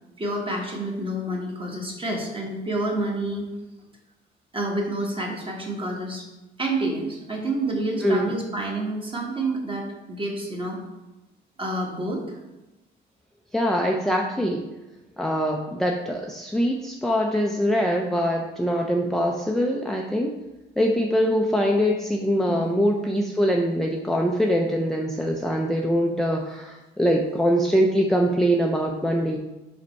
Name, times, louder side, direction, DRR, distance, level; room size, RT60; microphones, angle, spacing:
voice 1, 0.2-3.5 4.5-6.2 6.6-10.8 11.6-12.3 22.5-22.8, right 1 dB, 25° right, 0 dB, 1.5 m, -28 dB
voice 2, 8.0-8.3 13.5-14.6 15.2-20.3 20.8-29.4, equal, ahead, 0 dB, 0.5 m, -23 dB
5.0 x 4.3 x 4.5 m, 1.0 s
cardioid pair, 90°, 20 cm